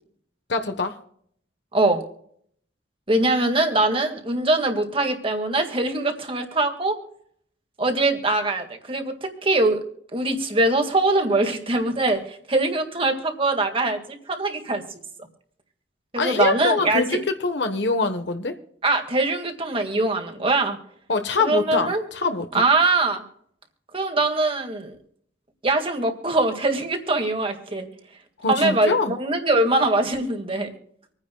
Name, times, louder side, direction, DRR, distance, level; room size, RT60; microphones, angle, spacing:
voice 1, 0.5-1.0 16.2-18.6 21.1-22.6 28.4-29.2, left 3 dB, 70° left, 7 dB, 1.1 m, -24 dB
voice 2, 3.1-6.9 7.8-9.8 10.1-14.8 16.1-17.2 18.8-20.8 21.4-22.0 22.5-23.2 23.9-25.0 25.6-27.9 28.5-30.7, right 2 dB, 30° right, 5 dB, 1.9 m, -22 dB
26.5 x 9.7 x 2.3 m, 0.63 s
head